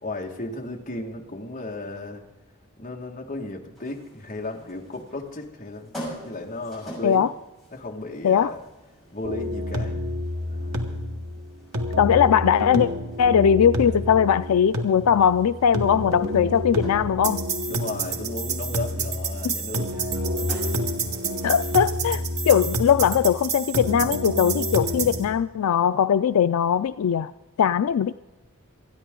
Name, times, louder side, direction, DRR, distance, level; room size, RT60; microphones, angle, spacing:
voice 1, 0.0-2.2 2.8-6.0 6.2-7.3 7.7-8.6 9.1-10.0 10.5-11.0 17.7-20.1, left 2 dB, 35° left, 1 dB, 1.8 m, -34 dB
sound 1, 3.7-23.5, equal, ahead, 6.5 m, -47 dB
sound 2, 9.2-25.2, right 1 dB, 75° right, 1.8 m, -28 dB
voice 2, 12.0-12.9 13.2-17.4 19.4-19.5 21.4-27.3 27.6-28.1, left 8 dB, 80° left, 13 dB, 0.4 m, -20 dB
27.0 x 10.0 x 3.8 m, 1.1 s
head